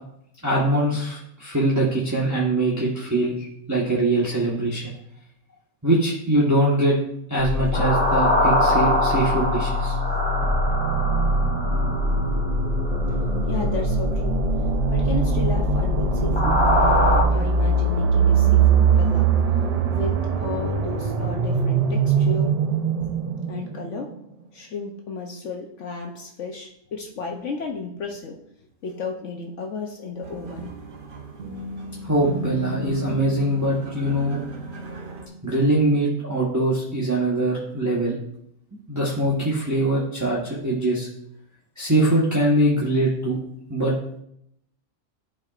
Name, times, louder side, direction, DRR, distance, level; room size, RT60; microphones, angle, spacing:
voice 1, 0.4-4.9 5.8-6.9 7.3-10.0 32.0-34.4 35.4-38.2 38.9-41.1 41.8-43.4 43.7-43.9, right 1 dB, 15° right, -7 dB, 1.2 m, -22 dB
sound 1, 7.4-17.2, left 2 dB, 25° left, 0.8 m, -23 dB
sound 2, 10.4-24.2, right 6 dB, 80° right, 0.3 m, -22 dB
voice 2, 13.5-14.4 14.9-16.6 17.3-19.3 19.9-22.5 23.5-24.2 24.5-28.4 28.8-30.8, left 4 dB, 65° left, 1 dB, 1.0 m, -33 dB
sound 3, 30.2-35.3, right 1 dB, 45° right, 0.9 m, -34 dB
12.0 x 4.7 x 2.5 m, 0.73 s
omnidirectional pair, 1.5 m